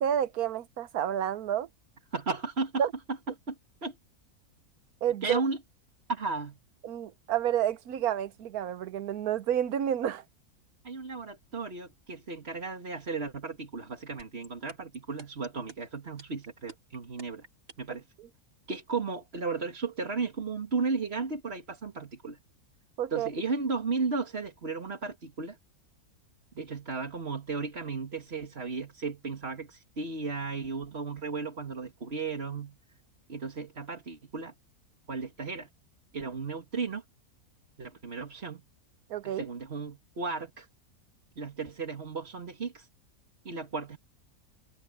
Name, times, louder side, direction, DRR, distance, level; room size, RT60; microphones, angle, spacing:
voice 1, 0.0-1.7 2.8-2.9 5.0-5.4 6.8-10.2 23.0-23.3 39.1-39.5, right 10 dB, 80° right, 1.3 m, -29 dB
voice 2, 2.1-2.8 3.5-3.6 3.8-3.9 5.2-5.6 6.1-6.6 10.8-17.4 17.8-18.0 18.7-22.4 23.1-25.6 26.6-32.8 33.3-34.5 35.1-35.7 36.1-37.0 37.8-38.6 39.2-40.7 41.4-42.9 43.5-44.0, right 4 dB, 45° right, 2.2 m, -34 dB
sound 1, 14.2-18.0, right 4 dB, 60° right, 3.8 m, -48 dB
omnidirectional pair, 1.6 m